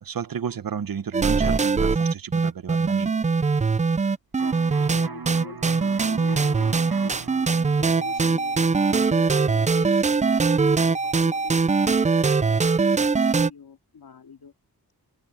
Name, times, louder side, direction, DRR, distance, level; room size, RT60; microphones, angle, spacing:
voice 1, 0.0-3.1, right 7 dB, 65° right, 0.9 m, -32 dB
sound 1, 1.1-13.5, right 4 dB, 20° right, 0.3 m, -22 dB
voice 2, 4.4-14.5, left 6 dB, 80° left, 2.3 m, -43 dB
Electric guitar, 4.4-12.0, right 5 dB, 85° right, 5.7 m, -42 dB
wide cardioid pair, 125°, 37 cm